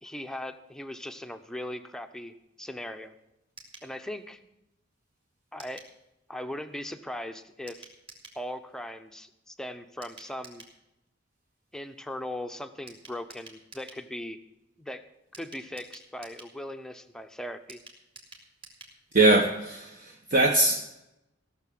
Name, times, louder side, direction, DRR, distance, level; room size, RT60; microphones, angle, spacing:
voice 1, 0.0-3.2 3.8-4.4 5.5-5.8 6.3-7.9 8.4-10.6 11.7-14.4 14.8-15.0 15.4-17.8, left 1 dB, 5° left, 7 dB, 0.7 m, -39 dB
sound 1, 3.6-3.9 5.6-5.9 7.7-8.4 10.0-10.8 12.9-14.0 15.3-16.6 17.7-19.0 19.3-19.4 19.6-19.7, right 2 dB, 25° right, 2.5 m, -50 dB
voice 2, 19.1-21.0, right 2 dB, 45° right, 3 dB, 0.9 m, -22 dB
16.0 x 6.5 x 7.6 m, 0.91 s
head